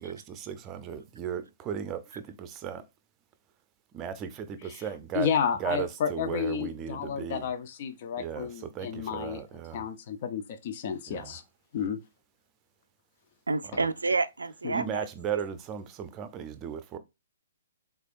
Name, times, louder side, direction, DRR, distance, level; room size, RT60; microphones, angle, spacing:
voice 1, 0.0-2.9 3.9-5.3 5.6-7.5 8.2-9.9 11.1-11.4 13.6-13.8 14.7-17.0, right 8 dB, 25° right, 0.5 m, -36 dB
voice 2, 5.1-9.4 9.7-11.4 11.7-12.0 14.6-14.8, left 7 dB, 50° left, 0.6 m, -31 dB
voice 3, 13.5-15.1, right 3 dB, 85° right, 0.3 m, -29 dB
3.5 x 3.3 x 2.5 m
hypercardioid pair, 130°, 0 cm